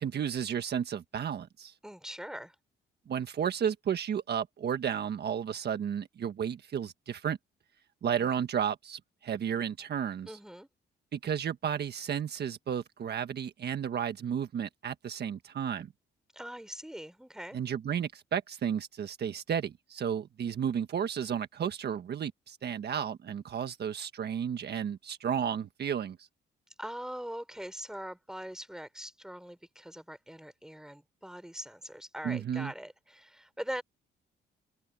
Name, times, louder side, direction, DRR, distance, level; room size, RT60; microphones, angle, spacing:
voice 1, 0.0-1.7 3.1-7.4 8.0-10.4 11.1-15.9 17.5-26.3 32.2-32.7, right 8 dB, 55° right, 1.5 m, -33 dB
voice 2, 1.8-2.6 10.3-10.7 16.3-17.6 26.8-33.8, equal, 5° right, 4.0 m, -42 dB
cardioid pair, 90°, 20 cm